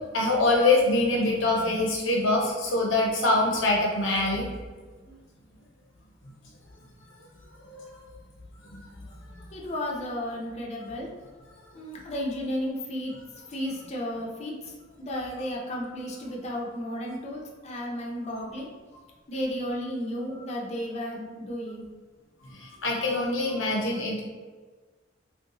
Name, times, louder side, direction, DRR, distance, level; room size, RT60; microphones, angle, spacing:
voice 1, 0.1-4.5 7.7-7.8 8.7-8.8 22.6-24.2, left 2 dB, 90° left, -2 dB, 0.8 m, -24 dB
voice 2, 9.5-11.1 11.7-13.1 13.5-14.7 15.0-18.7 19.3-21.9, equal, 35° left, -2 dB, 0.5 m, -33 dB
3.0 x 2.6 x 2.9 m, 1.4 s
head